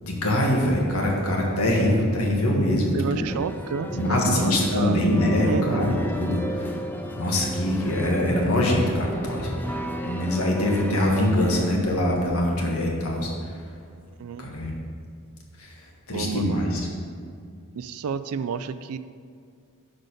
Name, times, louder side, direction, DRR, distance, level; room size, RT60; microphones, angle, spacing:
voice 1, 0.0-3.2 3.9-6.7 7.1-9.5 10.0-13.3 14.4-14.7 15.6-15.7 16.1-16.8, left 1 dB, 80° left, -1 dB, 1.6 m, -23 dB
voice 2, 2.9-5.0 5.5-5.9 14.2-14.5 16.1-16.6 17.7-19.0, right 6 dB, 90° right, 13 dB, 0.4 m, -30 dB
sound 1, 3.3-11.8, equal, 10° left, 0.5 m, -33 dB
6.4 x 5.2 x 6.5 m, 2.3 s
head